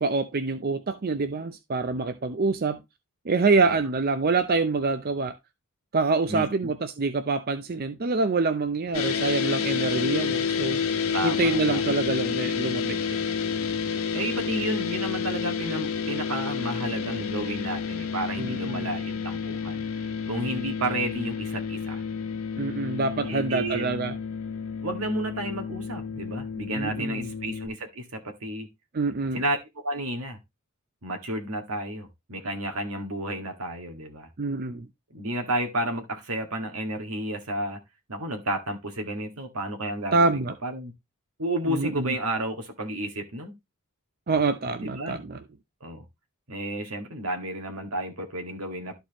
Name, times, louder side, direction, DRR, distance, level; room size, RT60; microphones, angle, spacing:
voice 1, 0.0-2.8 3.2-5.3 5.9-10.8 11.2-13.0 18.4-18.9 22.6-24.1 26.7-27.3 28.9-29.4 34.4-34.9 40.1-40.5 41.7-42.1 44.3-45.4, right 3 dB, 45° right, 0.6 m, -26 dB
voice 2, 6.3-6.7 11.1-12.0 14.1-22.0 23.1-23.9 24.8-28.7 29.3-29.6 29.8-30.4 31.0-34.3 35.1-37.8 38.1-40.9 41.4-43.5 44.8-45.2 45.8-46.0 46.5-48.9, right 1 dB, 85° right, 1.9 m, -32 dB
sound 1, 8.9-27.7, left 6 dB, 75° left, 1.4 m, -30 dB
12.5 x 4.6 x 3.0 m
head